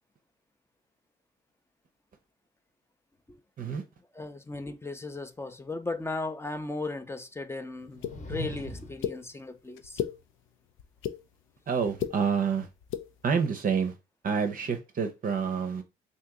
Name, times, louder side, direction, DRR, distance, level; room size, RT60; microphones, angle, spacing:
voice 1, 4.1-10.0, left 2 dB, 15° left, 0.4 m, -36 dB
sound 1, 7.8-9.1, left 1 dB, 40° left, 0.9 m, -39 dB
sound 2, 8.0-8.1 9.0-9.2 9.8-10.1 10.8-11.2 11.8-12.1 12.8-13.0, left 9 dB, 80° left, 0.4 m, -31 dB
voice 2, 11.7-12.7 13.2-13.9 14.2-15.8, right 6 dB, 45° right, 0.6 m, -28 dB
2.8 x 2.7 x 3.5 m
cardioid pair, 90°, 20 cm